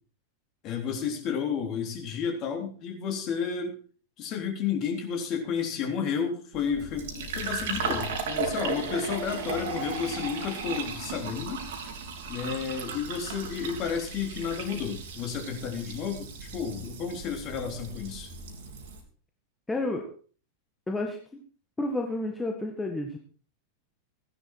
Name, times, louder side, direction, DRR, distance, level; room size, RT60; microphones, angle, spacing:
voice 1, 0.6-3.8 4.2-11.7 12.3-18.3, left 7 dB, 35° left, 3 dB, 3.6 m, -32 dB
Fill (with liquid), 6.5-19.0, right 4 dB, 55° right, 2.8 m, -36 dB
voice 2, 19.7-20.0 20.9-21.4 21.8-23.2, left 2 dB, 10° left, 2 dB, 1.7 m, -30 dB
16.0 x 11.0 x 4.5 m, 0.42 s
figure-of-eight pair, 90°, 0 cm